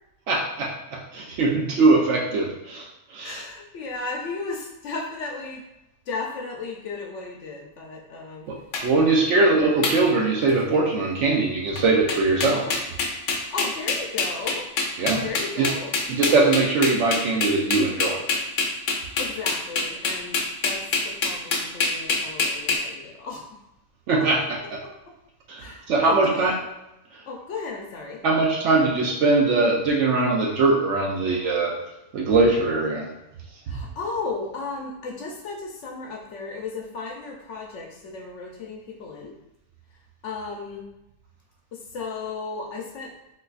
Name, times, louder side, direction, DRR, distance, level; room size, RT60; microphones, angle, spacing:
voice 1, 0.3-3.4 8.5-8.6 8.8-12.7 15.0-15.2 15.6-15.7 16.1-18.2 24.1-24.6 25.5-26.6 28.2-31.7 32.1-33.1, right 3 dB, 65° right, 0 dB, 0.8 m, -21 dB
voice 2, 3.2-5.6 6.1-8.5 9.3-9.4 13.4-14.7 15.2-16.0 19.2-20.8 21.0-23.6 25.6-26.6 27.3-28.2 33.7-39.3 40.2-40.9 41.7-43.1, left 3 dB, 65° left, 0 dB, 0.8 m, -35 dB
sound 1, 8.7-8.8 9.8-10.0 10.5-10.8 11.8-11.9 12.1-22.8, left 4 dB, 85° left, 1.1 m, -24 dB
3.9 x 2.6 x 2.4 m, 0.90 s
omnidirectional pair, 1.4 m